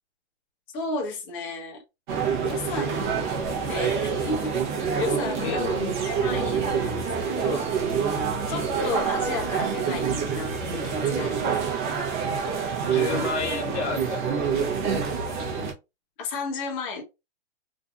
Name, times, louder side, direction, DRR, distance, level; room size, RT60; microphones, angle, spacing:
voice 1, 0.7-1.8 2.4-3.3 3.6-4.6 5.0-5.6 6.0-7.7 8.5-11.5 16.2-17.0, left 3 dB, 20° left, 0.5 m, -33 dB
sound 1, 2.1-15.7, right 6 dB, 45° right, 0.7 m, -27 dB
voice 2, 5.4-6.0 12.8-15.4, left 5 dB, 75° left, 1.0 m, -32 dB
2.6 x 2.5 x 2.2 m
hypercardioid pair, 155°, 34 cm